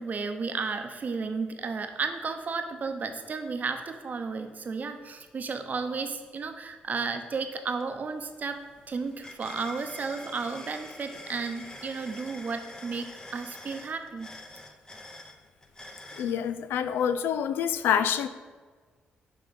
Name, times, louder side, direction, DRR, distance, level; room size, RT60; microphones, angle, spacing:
voice 1, 0.0-8.6 8.9-14.3, right 4 dB, 50° right, 6 dB, 0.7 m, -33 dB
sound 1, 7.8-7.9 8.2-16.4, left 1 dB, 20° left, 0.8 m, -46 dB
voice 2, 16.2-18.3, left 8 dB, 85° left, 12 dB, 0.3 m, -26 dB
6.1 x 3.7 x 5.2 m, 1.5 s
supercardioid pair, 60°, 4 cm